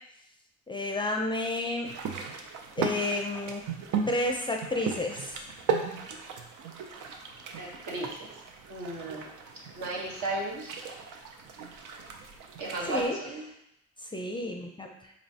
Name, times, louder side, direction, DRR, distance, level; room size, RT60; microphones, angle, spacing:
voice 1, 0.7-1.9 2.8-3.6 4.1-5.4 12.9-13.2 14.0-15.1, left 2 dB, 15° left, 2 dB, 0.4 m, -31 dB
sound 1, 1.8-13.1, right 5 dB, 85° right, 0.5 m, -37 dB
voice 2, 7.6-8.3 8.7-9.3 9.7-10.7 12.6-13.4, right 2 dB, 70° right, -3 dB, 1.1 m, -35 dB
4.1 x 3.0 x 2.7 m, 0.78 s
cardioid pair, 80°, 30 cm